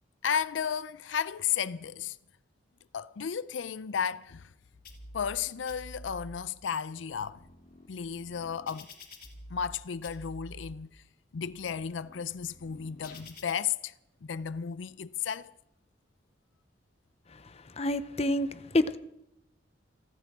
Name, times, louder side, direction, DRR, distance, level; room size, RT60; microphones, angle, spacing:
voice 1, 0.2-2.2 2.9-4.5 5.1-7.4 7.9-8.9 9.5-11.0 11.3-13.9 14.2-15.5, left 7 dB, 85° left, 0.5 m, -33 dB
sound 1, 4.8-5.4 5.7-6.4 7.0-9.8 10.0-10.7 11.3-13.5, left 1 dB, 50° left, 2.9 m, -49 dB
voice 2, 17.8-18.5 18.7-19.0, left 1 dB, 35° left, 0.7 m, -26 dB
29.0 x 13.5 x 3.6 m
head